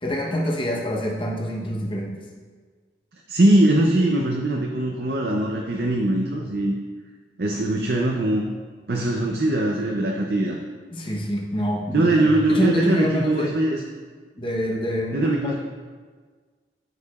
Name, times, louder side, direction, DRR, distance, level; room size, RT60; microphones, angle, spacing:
voice 1, 0.0-2.2 10.9-13.5 14.4-15.6, equal, 30° left, -1 dB, 0.9 m, -26 dB
voice 2, 3.3-6.7 7.4-8.4 8.9-10.6 11.9-13.8 15.1-15.6, right 1 dB, 55° right, 0 dB, 0.5 m, -21 dB
13.0 x 4.8 x 2.4 m, 1.5 s
head